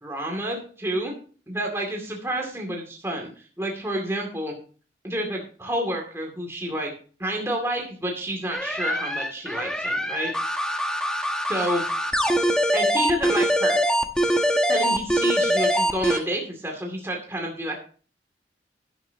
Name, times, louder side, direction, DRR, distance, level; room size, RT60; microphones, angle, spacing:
voice 1, 0.0-1.1 1.5-3.3 3.6-4.5 5.0-6.9 7.2-10.3 11.5-11.8 12.7-13.8 14.7-17.8, right 1 dB, 15° right, 0 dB, 2.4 m, -29 dB
sound 1, 8.5-16.2, equal, 5° left, 1.0 m, -23 dB
12.5 x 11.0 x 2.8 m, 0.40 s
head